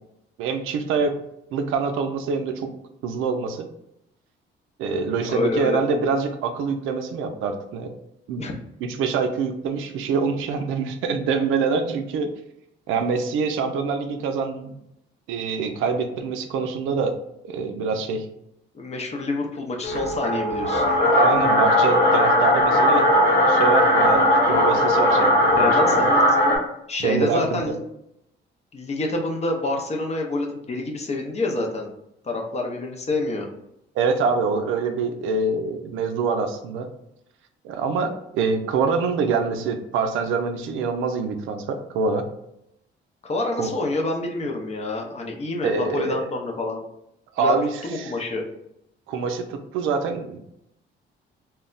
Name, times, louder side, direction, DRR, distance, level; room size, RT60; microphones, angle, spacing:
voice 1, 0.4-1.2 1.5-2.7 3.0-3.7 4.8-7.9 8.3-8.5 9.0-12.3 12.9-14.7 15.3-17.2 17.4-18.3 21.0-23.1 23.5-26.0 27.0-27.6 34.0-36.9 37.6-42.3 43.6-43.7 45.6-46.3 47.4-47.7 48.0-48.1 49.1-50.4, right 5 dB, 85° right, 6 dB, 0.4 m, -25 dB
voice 2, 5.3-5.8 8.4-8.5 18.7-20.8 25.6-26.2 26.9-27.8 28.7-31.9 32.2-33.5 43.2-46.8 47.4-47.6 47.8-48.4, left 2 dB, 35° left, 1 dB, 0.6 m, -27 dB
sound 1, 19.8-26.6, left 1 dB, 60° left, 1.0 m, -18 dB
2.2 x 2.0 x 3.7 m, 0.79 s
cardioid pair, 90°, 20 cm